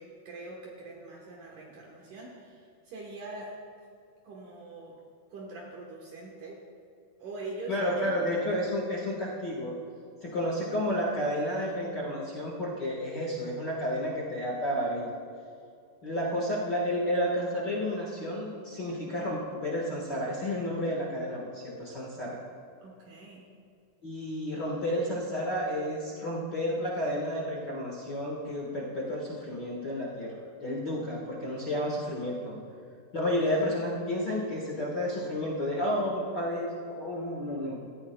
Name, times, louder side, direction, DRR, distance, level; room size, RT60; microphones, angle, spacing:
voice 1, 0.0-3.6 4.2-5.0 5.3-6.6 7.2-8.3 22.8-23.5, right 2 dB, 65° right, -2 dB, 2.5 m, -43 dB
voice 2, 7.7-9.7 10.2-15.1 16.0-22.4 24.0-32.6 33.1-37.8, equal, 60° left, -4 dB, 1.1 m, -31 dB
18.0 x 14.5 x 2.2 m, 2.5 s
omnidirectional pair, 4.3 m